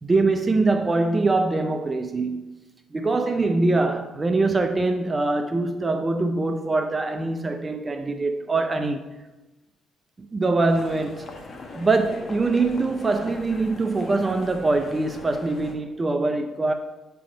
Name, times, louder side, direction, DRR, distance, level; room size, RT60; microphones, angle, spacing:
voice 1, 0.0-2.5 2.9-9.0 10.3-11.2 11.8-16.7, right 3 dB, 25° right, 0.5 m, -23 dB
sound 1, 10.7-15.8, left 2 dB, 45° left, 1.0 m, -40 dB
8.6 x 3.5 x 4.9 m
cardioid pair, 90°, 0 cm